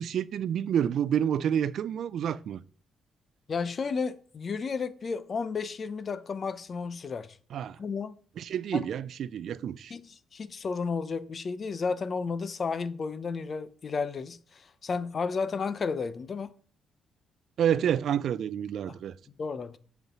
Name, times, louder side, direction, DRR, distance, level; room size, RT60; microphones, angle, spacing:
voice 1, 0.0-2.6 7.5-7.8 8.4-9.9 17.6-19.1, right 9 dB, 70° right, 0.4 m, -29 dB
voice 2, 3.5-7.4 7.8-8.2 8.7-8.8 9.9-16.5 18.9-19.0 19.4-19.8, left 5 dB, 50° left, 0.7 m, -32 dB
7.9 x 4.6 x 5.5 m
supercardioid pair, 65°, 0 cm